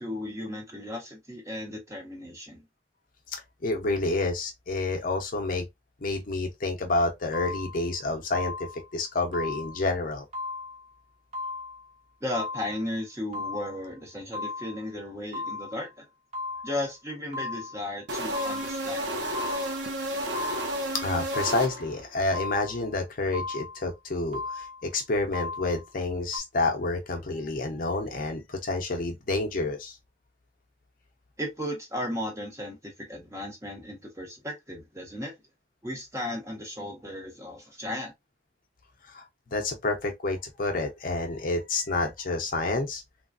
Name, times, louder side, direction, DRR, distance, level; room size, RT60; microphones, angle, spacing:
voice 1, 0.0-2.6 12.2-16.0 16.6-19.1 31.4-35.3 35.8-38.1, left 1 dB, 15° right, 1.0 m, -35 dB
voice 2, 3.3-5.7 6.0-8.5 8.9-10.2 20.9-30.0 39.1-39.3 39.5-43.0, left 2 dB, 50° left, 0.6 m, -29 dB
sound 1, 7.3-7.9 8.3-8.9 9.3-9.9 10.3-10.9 11.3-11.9 12.3-12.9 13.3-13.9 14.3-14.9 15.3-15.9 16.3-16.9 17.3-17.9 18.3-18.9 19.3-19.9 20.3-20.9 21.3-21.9 22.3-22.9 23.3-23.9 24.3-24.9 25.3-25.9 26.3-26.4, left 3 dB, 40° right, 1.1 m, -36 dB
sound 2, 18.1-22.1, right 1 dB, 90° right, 0.9 m, -32 dB
3.3 x 2.3 x 2.4 m
head